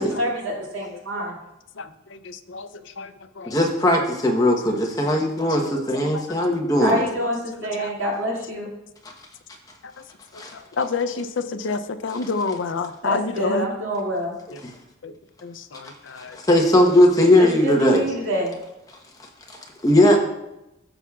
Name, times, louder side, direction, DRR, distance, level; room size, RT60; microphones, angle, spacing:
voice 1, 0.0-1.3 6.8-8.7 13.0-14.3 17.4-18.5, equal, 80° right, -3 dB, 2.4 m, -26 dB
voice 2, 1.8-3.6 3.9-4.0 5.6-5.7 6.0-6.3 7.0-7.9 10.3-13.7 14.5-14.6 15.0-15.1 15.4-16.4, left 4 dB, 70° left, 10 dB, 0.5 m, -29 dB
voice 3, 3.5-7.0 10.4-10.5 16.3-18.0 19.8-20.2, left 1 dB, 20° left, 1 dB, 0.9 m, -18 dB
13.0 x 7.1 x 2.4 m, 0.91 s
head